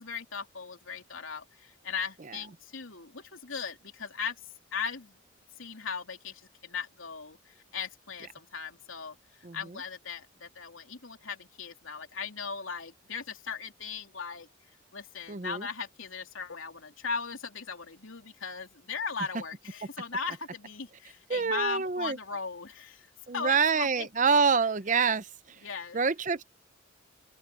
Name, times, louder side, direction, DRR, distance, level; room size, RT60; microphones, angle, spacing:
voice 1, 0.0-4.4 4.7-5.2 5.6-14.5 14.9-24.1 25.6-26.0, left 5 dB, 85° left, 3.3 m, -38 dB
voice 2, 15.3-15.7 21.3-22.2 23.3-25.3 25.9-26.4, right 5 dB, 40° right, 0.7 m, -26 dB
open air
head